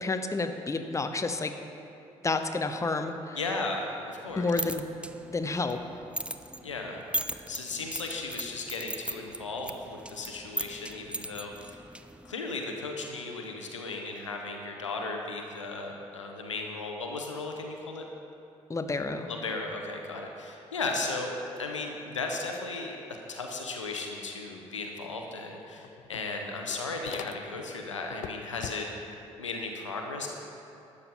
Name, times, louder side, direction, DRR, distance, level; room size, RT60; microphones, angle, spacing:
voice 1, 0.0-1.5 2.2-3.4 4.4-4.9 5.3-5.8 18.7-19.3, left 3 dB, 20° left, 7 dB, 0.8 m, -30 dB
voice 2, 3.3-4.5 6.6-7.0 7.5-11.8 12.2-18.1 19.3-23.0 23.3-28.9 29.4-30.3, left 3 dB, 85° left, 2 dB, 0.8 m, -35 dB
sound 1, 4.3-12.3, right 1 dB, 5° right, 0.6 m, -39 dB
sound 2, 25.1-25.2 25.5-27.7 28.1-29.1, left 11 dB, 55° left, 0.4 m, -44 dB
12.5 x 8.2 x 5.6 m, 2.9 s
figure-of-eight pair, 45°, 15 cm